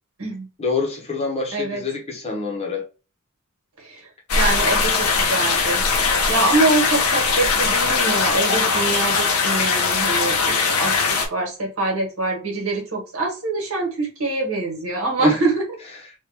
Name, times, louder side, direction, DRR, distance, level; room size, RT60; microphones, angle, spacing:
voice 1, 0.6-2.8 15.2-15.4, left 4 dB, 30° left, 0.9 m, -26 dB
voice 2, 1.5-1.8 3.8-4.1 4.3-5.8 6.3-11.0 11.3-15.6, right 2 dB, 70° right, 1.4 m, -24 dB
sound 1, 4.3-11.3, left 4 dB, 85° left, 0.8 m, -20 dB
3.1 x 2.4 x 3.3 m
head